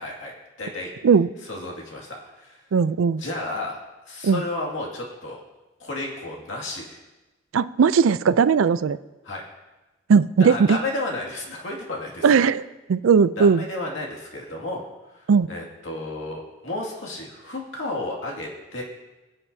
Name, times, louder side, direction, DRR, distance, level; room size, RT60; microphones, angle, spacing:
voice 1, 0.0-0.9 1.4-2.6 3.2-3.8 4.1-5.4 5.8-7.0 9.2-9.4 10.4-12.4 13.4-14.8 15.1-18.8, left 2 dB, 70° left, -1 dB, 2.2 m, -32 dB
voice 2, 2.7-3.2 4.2-4.4 7.5-9.0 10.1-10.8 12.2-13.6 15.3-15.5, right 6 dB, 80° right, 15 dB, 0.4 m, -18 dB
22.0 x 7.6 x 2.7 m, 1.1 s
head